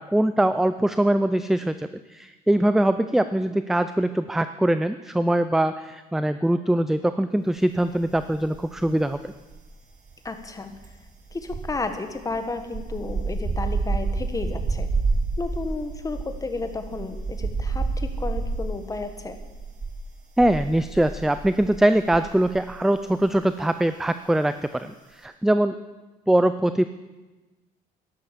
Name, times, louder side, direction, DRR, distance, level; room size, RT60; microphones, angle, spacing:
voice 1, 0.0-9.3 20.4-25.7 26.3-26.9, right 1 dB, ahead, 11 dB, 0.4 m, -22 dB
sound 1, 8.1-8.9 9.1-22.7 22.9-23.2, right 3 dB, 45° right, 2.7 m, -29 dB
voice 2, 10.2-10.7 11.3-14.9 15.4-19.4, left 3 dB, 20° left, 7 dB, 1.5 m, -32 dB
12.0 x 11.0 x 7.4 m, 1.2 s
cardioid pair, 110°, 17 cm